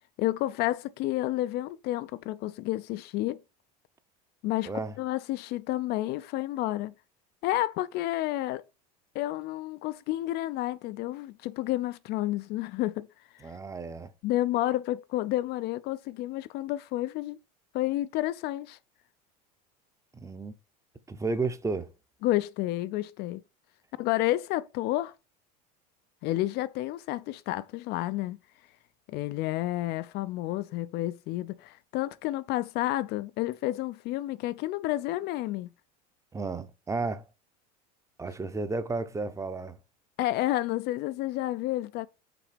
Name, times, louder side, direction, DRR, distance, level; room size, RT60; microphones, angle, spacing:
voice 1, 0.2-3.4 4.4-6.9 7.4-8.6 9.1-13.1 13.4-13.5 14.2-17.4 17.7-18.8 22.2-23.4 24.0-25.1 26.2-28.4 29.1-35.7 40.2-42.1, left 15 dB, 55° left, 0.5 m, -30 dB
voice 2, 13.4-14.1 20.1-20.5 21.1-21.9 36.3-37.2 38.2-39.8, right 3 dB, 15° right, 0.8 m, -32 dB
6.0 x 3.9 x 5.0 m
supercardioid pair, 105°, 20 cm